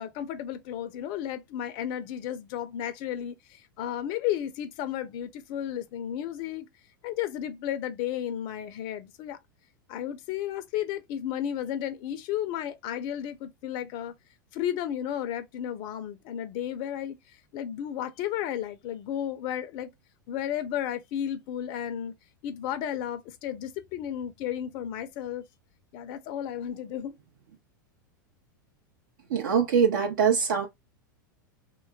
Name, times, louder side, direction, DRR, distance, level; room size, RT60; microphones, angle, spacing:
voice 1, 0.0-6.7 7.0-9.4 9.9-14.1 14.5-19.9 20.3-22.1 22.4-25.4 25.9-27.1, left 10 dB, 45° left, 0.4 m, -33 dB
voice 2, 29.3-30.7, right 7 dB, 70° right, 0.5 m, -23 dB
3.0 x 2.2 x 2.2 m
hypercardioid pair, 90°, 11 cm